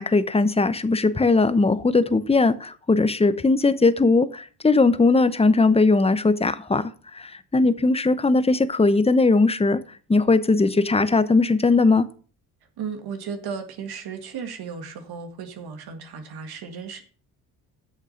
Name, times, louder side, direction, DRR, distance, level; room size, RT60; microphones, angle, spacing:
voice 1, 0.0-9.8 10.1-12.1, left 3 dB, 15° left, 13 dB, 0.9 m, -19 dB
voice 2, 12.8-17.0, right 6 dB, 70° right, 6 dB, 2.0 m, -35 dB
8.6 x 6.5 x 6.5 m, 0.40 s
cardioid pair, 85°, 39 cm